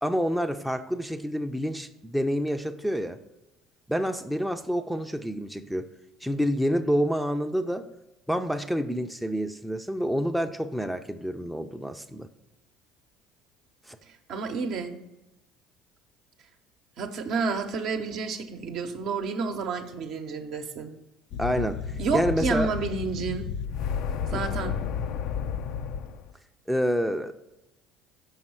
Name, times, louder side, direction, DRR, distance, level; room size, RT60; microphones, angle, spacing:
voice 1, 0.0-3.2 3.9-5.9 6.2-7.8 8.3-12.3 13.9-14.0 21.4-21.8 22.1-22.7 24.3-24.4 26.7-27.3, equal, ahead, 5 dB, 0.5 m, -28 dB
voice 2, 14.3-15.0 17.0-20.9 22.0-23.5 24.3-24.8, right 4 dB, 60° right, 5 dB, 0.8 m, -30 dB
sound 1, 21.3-26.3, left 7 dB, 65° left, 0.4 m, -32 dB
6.4 x 5.4 x 4.5 m, 0.97 s
hypercardioid pair, 65°, 0 cm